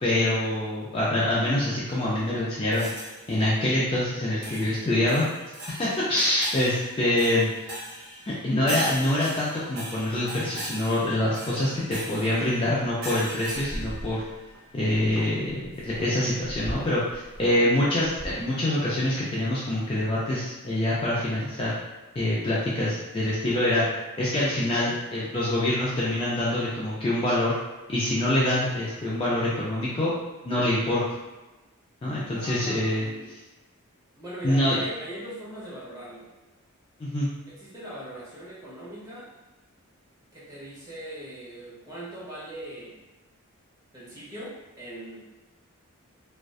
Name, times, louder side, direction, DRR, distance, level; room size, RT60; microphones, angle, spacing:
voice 1, 0.0-2.9 3.3-5.3 5.7-7.5 8.4-14.2 14.7-21.7 22.2-23.9 24.2-27.5 27.9-30.1 30.4-31.0 32.0-33.1 34.4-34.8 37.0-37.3, left 1 dB, 25° left, -7 dB, 0.3 m, -25 dB
sound 1, 2.7-3.5 4.4-14.7, right 1 dB, 45° right, 0.6 m, -40 dB
sound 2, 12.0-12.4 12.9-13.2 13.4-14.6 14.8-18.5, equal, 85° right, 0.8 m, -39 dB
voice 2, 32.3-33.3 34.1-36.3 37.5-39.3 40.3-43.0 43.9-45.2, right 1 dB, 15° right, -9 dB, 0.8 m, -40 dB
2.5 x 2.2 x 2.3 m, 1.1 s
head